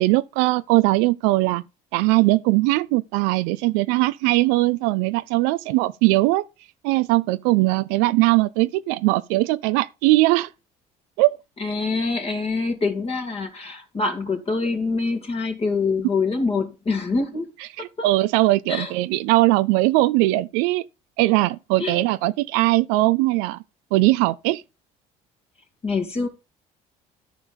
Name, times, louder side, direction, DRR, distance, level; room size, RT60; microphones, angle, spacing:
voice 1, 0.0-1.6 1.9-6.4 6.8-10.5 11.2-11.4 17.8-20.8 21.2-23.6 23.9-24.6, right 19 dB, 85° right, 0.5 m, -20 dB
voice 2, 11.6-17.5 18.0-18.1 18.7-18.9 21.8-22.0 25.8-26.3, left 4 dB, 35° left, 2.6 m, -25 dB
13.5 x 4.5 x 5.1 m
supercardioid pair, 80°, 17 cm